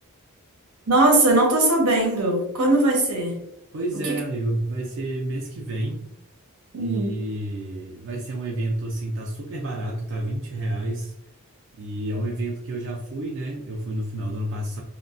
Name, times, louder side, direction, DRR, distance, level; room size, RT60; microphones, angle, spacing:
voice 1, 0.9-3.4 4.1-4.2 6.7-7.2, right 2 dB, 90° right, 1 dB, 0.8 m, -20 dB
voice 2, 3.7-6.1 6.8-11.1 11.7-14.8, right 1 dB, 60° right, -1 dB, 0.4 m, -29 dB
3.0 x 2.1 x 2.4 m, 0.77 s
head